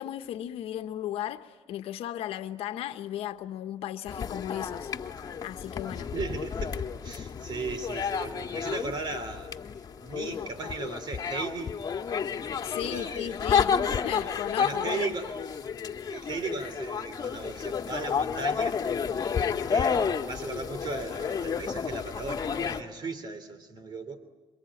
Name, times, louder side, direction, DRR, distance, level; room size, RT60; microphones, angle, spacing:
voice 1, 0.0-4.9 5.4-6.1 12.6-13.8 14.0-15.1, left 12 dB, 75° left, 1.2 m, -35 dB
sound 1, 4.1-22.8, left 6 dB, 40° left, 1.7 m, -31 dB
voice 2, 5.9-9.5 10.0-11.8 12.8-15.4 16.0-18.8 19.7-24.3, right 4 dB, 45° right, 3.2 m, -37 dB
28.0 x 23.5 x 8.7 m
cardioid pair, 105°, 10 cm